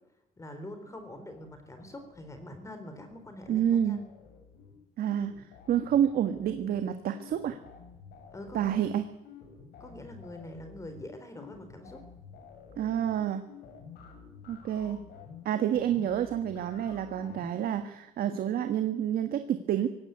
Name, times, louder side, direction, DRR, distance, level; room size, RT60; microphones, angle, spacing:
voice 1, 0.4-4.0 8.3-8.9 9.8-12.0, left 1 dB, 20° left, 8 dB, 3.7 m, -44 dB
sound 1, 0.8-2.6 2.9-17.7, left 5 dB, 70° left, 7.2 m, -51 dB
voice 2, 3.5-4.0 5.0-5.3 5.7-7.6 8.5-9.1 12.8-13.4 14.5-15.0 15.4-19.9, right 10 dB, 60° right, 8 dB, 1.6 m, -28 dB
18.0 x 16.5 x 9.3 m, 0.90 s
cardioid pair, 110°, 17 cm